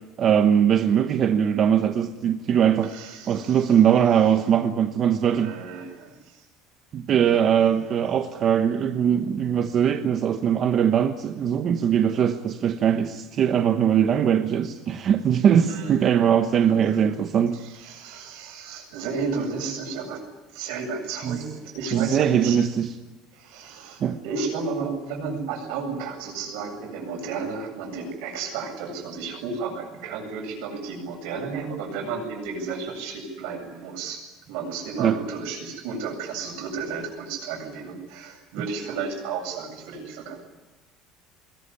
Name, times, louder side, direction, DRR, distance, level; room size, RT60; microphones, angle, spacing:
voice 1, 0.2-2.9 3.3-5.6 6.9-17.6 21.2-21.4 21.9-22.9 24.0-24.2 35.0-35.2, right 8 dB, 35° right, 8 dB, 1.0 m, -21 dB
voice 2, 2.8-3.8 5.3-6.4 7.2-8.0 15.7-16.3 16.6-17.0 17.5-20.2 20.5-22.6 23.3-34.2 34.5-40.4, right 5 dB, 70° right, 3 dB, 7.9 m, -33 dB
21.5 x 20.0 x 10.0 m, 1.1 s
cardioid pair, 170°, 0 cm